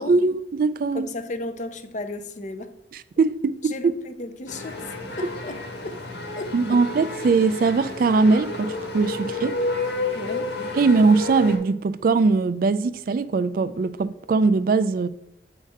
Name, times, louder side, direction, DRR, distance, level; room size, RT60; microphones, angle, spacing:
voice 1, 0.0-1.1 2.9-3.9 6.5-9.6 10.8-15.1, right 4 dB, 50° right, 0.3 m, -21 dB
voice 2, 0.9-2.8 3.6-6.0 6.4-6.8 10.2-10.5, left 2 dB, 40° left, 0.5 m, -35 dB
sound 1, 4.5-11.6, left 2 dB, 60° left, 1.3 m, -30 dB
8.5 x 4.9 x 4.3 m
head